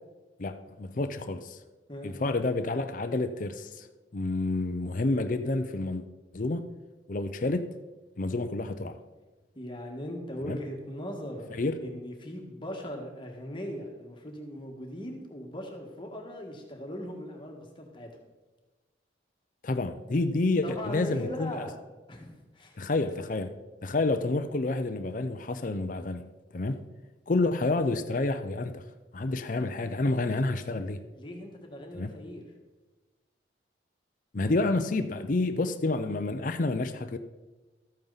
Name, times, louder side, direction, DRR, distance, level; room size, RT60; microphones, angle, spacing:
voice 1, 0.4-1.6 2.0-3.9 4.1-6.0 6.3-6.7 7.1-7.7 8.2-9.0 10.5-10.6 11.5-11.8 19.6-21.7 22.8-23.5 23.8-26.3 26.5-26.8 27.3-28.8 29.1-31.0 31.9-32.1 34.3-37.2, left 2 dB, 45° left, 0.5 m, -29 dB
voice 2, 9.5-18.1 20.6-21.8 22.1-22.8 31.1-32.4, equal, 25° left, 1.6 m, -39 dB
13.0 x 8.8 x 4.0 m
head